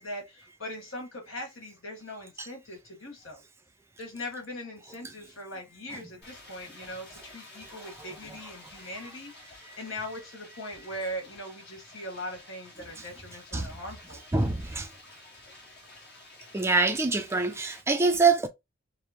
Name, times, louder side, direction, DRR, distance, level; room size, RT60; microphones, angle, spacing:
voice 1, 0.0-3.4 4.0-14.2, left 1 dB, 75° left, 1.6 m, -40 dB
sound 1, 6.2-17.8, left 2 dB, 55° left, 1.4 m, -51 dB
voice 2, 7.7-8.4 9.0-9.2 13.0-13.1 13.5-13.7 14.3-14.9 16.5-18.5, right 3 dB, 15° right, 0.4 m, -26 dB
4.9 x 2.1 x 2.9 m
head